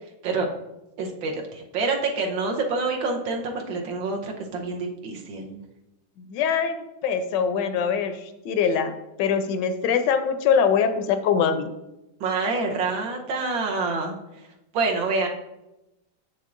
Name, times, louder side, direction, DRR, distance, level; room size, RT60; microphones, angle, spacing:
voice 1, 1.0-5.6 12.2-14.2 14.7-15.3, right 3 dB, 90° right, 1 dB, 1.7 m, -27 dB
voice 2, 6.2-8.9 9.2-11.7, left 6 dB, 75° left, 9 dB, 1.2 m, -23 dB
7.1 x 6.3 x 2.5 m, 0.95 s
omnidirectional pair, 2.0 m